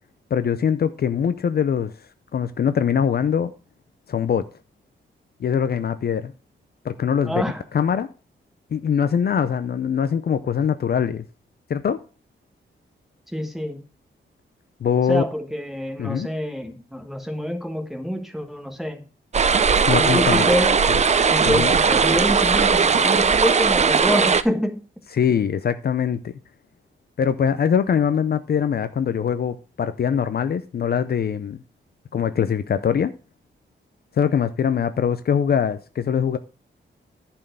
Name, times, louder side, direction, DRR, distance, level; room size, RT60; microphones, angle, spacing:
voice 1, 0.3-1.9 2.3-3.5 4.1-4.5 5.4-6.3 6.8-7.4 7.7-8.1 8.7-11.2 11.7-12.0 14.8-15.2 16.0-16.3 19.9-20.5 21.4-21.7 25.1-26.3 27.2-31.6 32.1-33.1 34.2-36.4, left 7 dB, 50° left, 0.5 m, -22 dB
voice 2, 7.2-7.6 13.3-13.8 15.1-19.0 19.9-20.8 21.3-24.8, equal, ahead, 1.4 m, -26 dB
sound 1, 19.3-24.4, right 5 dB, 35° right, 0.6 m, -18 dB
11.0 x 4.5 x 6.7 m
wide cardioid pair, 160°, 20 cm